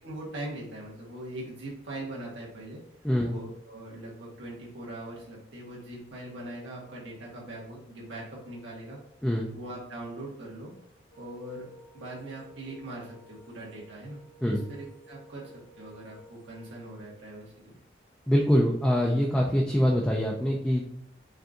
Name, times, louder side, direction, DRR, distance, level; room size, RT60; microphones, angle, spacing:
voice 1, 0.0-2.8 3.2-9.0 9.5-10.7 11.2-17.8, right 1 dB, 80° right, -4 dB, 1.6 m, -41 dB
sound 1, 11.1-17.0, equal, 40° left, 1.1 m, -54 dB
voice 2, 18.3-20.8, equal, 5° left, -1 dB, 0.4 m, -24 dB
5.2 x 2.6 x 3.7 m, 0.70 s
head